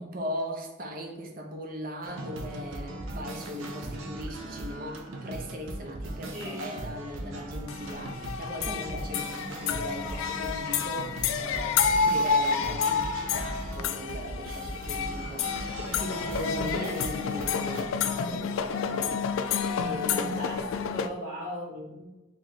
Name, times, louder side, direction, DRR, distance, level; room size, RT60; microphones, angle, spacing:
voice 1, 0.0-19.1 19.8-20.4 21.6-21.9, equal, 45° right, 2 dB, 0.6 m, -38 dB
sound 1, 2.0-17.9, right 1 dB, 90° right, 0.6 m, -39 dB
voice 2, 6.3-6.8 20.1-22.1, equal, 75° right, -11 dB, 1.4 m, -38 dB
sound 2, 7.7-21.1, left 6 dB, 90° left, 0.3 m, -29 dB
3.1 x 3.0 x 3.8 m, 1.1 s
head